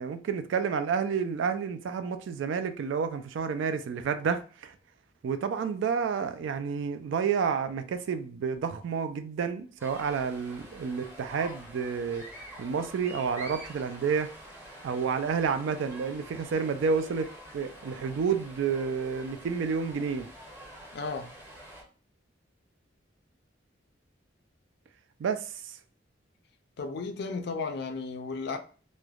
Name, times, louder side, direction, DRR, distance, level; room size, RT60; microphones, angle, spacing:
voice 1, 0.0-4.7 5.2-12.2 12.6-14.3 14.8-20.3 25.2-25.8, right 6 dB, 75° right, 0.3 m, -30 dB
sound 1, 9.8-21.8, right 1 dB, 10° right, 0.7 m, -47 dB
voice 2, 20.9-21.3 26.8-28.6, left 4 dB, 60° left, 0.4 m, -34 dB
3.1 x 2.1 x 2.3 m
head